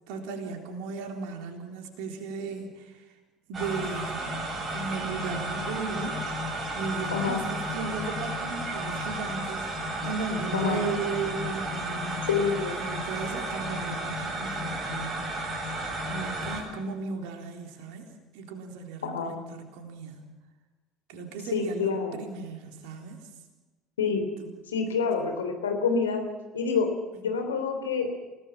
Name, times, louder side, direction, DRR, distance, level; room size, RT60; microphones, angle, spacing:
voice 1, 0.1-3.0 3.5-4.4 4.7-6.2 6.7-12.3 12.8-15.4 16.1-20.3 21.1-23.3 24.4-24.5, right 4 dB, 60° right, 3 dB, 3.7 m, -36 dB
sound 1, 3.5-16.6, right 1 dB, 30° right, 7.6 m, -33 dB
voice 2, 7.1-7.4 10.5-10.8 12.3-12.8 19.0-19.3 21.5-22.2 24.0-24.2 24.7-26.2 26.5-26.9 27.2-28.1, left 5 dB, 75° left, 5 dB, 3.4 m, -27 dB
28.5 x 18.0 x 5.9 m, 1.2 s
figure-of-eight pair, 60°, 0 cm